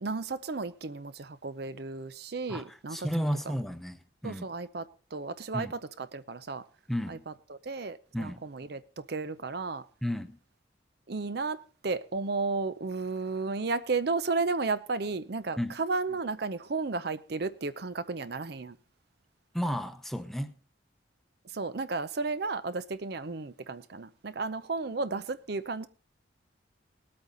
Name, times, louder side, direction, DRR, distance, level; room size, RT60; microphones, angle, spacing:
voice 1, 0.0-3.1 4.2-6.6 7.1-8.8 9.1-9.8 11.1-18.8 21.5-25.9, right 3 dB, 55° right, 0.6 m, -33 dB
voice 2, 2.5-4.5 5.5-5.7 6.9-7.2 8.1-8.4 10.0-10.4 15.6-15.8 19.5-20.5, equal, ahead, 0.8 m, -33 dB
19.5 x 8.7 x 3.9 m
head